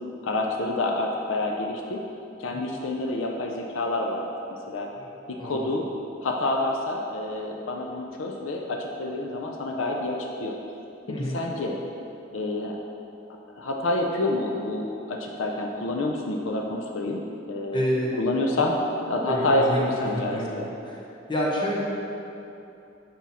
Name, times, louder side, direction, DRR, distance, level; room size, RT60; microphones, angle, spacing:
voice 1, 0.2-2.0 2.4-4.3 4.7-4.9 5.4-5.8 6.2-10.5 11.3-11.8 12.3-12.8 13.6-17.8 18.2-18.8 19.0-20.7, left 2 dB, 80° left, 1 dB, 0.6 m, -28 dB
voice 2, 5.4-5.7 11.1-11.4 17.7-18.1 18.5-18.6 19.3-20.6 20.8-21.0 21.3-21.8, equal, 25° left, -4 dB, 1.1 m, -28 dB
6.2 x 5.6 x 4.2 m, 2.8 s
head